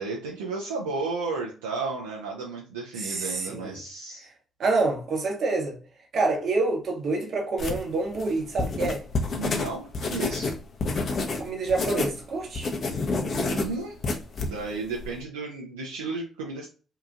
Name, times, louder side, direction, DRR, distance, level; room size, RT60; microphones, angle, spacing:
voice 1, 0.0-4.3 9.4-10.5 13.2-14.0 14.5-16.7, right 3 dB, 85° right, 0.4 m, -33 dB
voice 2, 3.0-3.8 4.6-5.8 6.1-9.0 11.4-12.7, right 3 dB, 60° right, 0.9 m, -27 dB
sound 1, 7.6-12.2 12.4-15.1, left 3 dB, 50° left, 0.6 m, -29 dB
2.8 x 2.4 x 2.4 m
hypercardioid pair, 45°, 0 cm